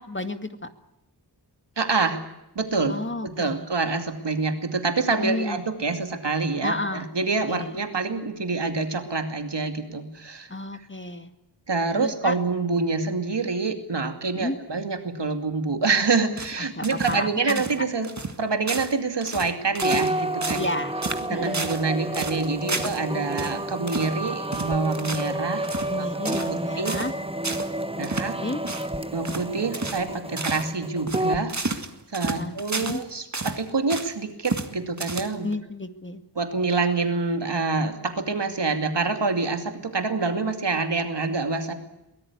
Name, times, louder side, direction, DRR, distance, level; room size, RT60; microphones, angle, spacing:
voice 1, 0.1-0.7 2.9-3.7 5.2-5.6 6.6-7.1 7.5-7.7 10.5-11.3 11.9-12.4 14.3-14.6 16.6-17.8 20.5-20.9 21.3-21.6 25.9-27.1 27.9-28.6 32.2-33.0 35.4-36.2, left 2 dB, 30° left, 9 dB, 2.1 m, -31 dB
voice 2, 1.8-2.2 2.6-10.5 11.7-18.1 18.4-20.7 21.3-26.9 28.0-28.4 29.1-31.5 32.1-35.5 36.4-41.7, right 4 dB, 85° right, 6 dB, 2.6 m, -26 dB
sound 1, 16.4-17.2 17.5-17.8 18.0-18.4 18.7-19.0 19.2-20.1 20.4-20.7 21.0-21.9 22.1-23.0 23.4-23.6 23.9-24.1 24.5-25.3 25.6-25.9 26.3-26.6 26.9-27.1 27.4-27.7 28.0-28.3 28.6-28.9 29.3-29.5 29.7-30.1 30.4-30.7 31.1-33.0 33.3-34.1 34.5-34.7 35.0-35.5, right 3 dB, 45° right, 2.0 m, -31 dB
sound 2, 19.8-31.4, right 1 dB, 15° right, 1.3 m, -30 dB
23.0 x 17.0 x 9.7 m, 0.91 s
wide cardioid pair, 40°, 41 cm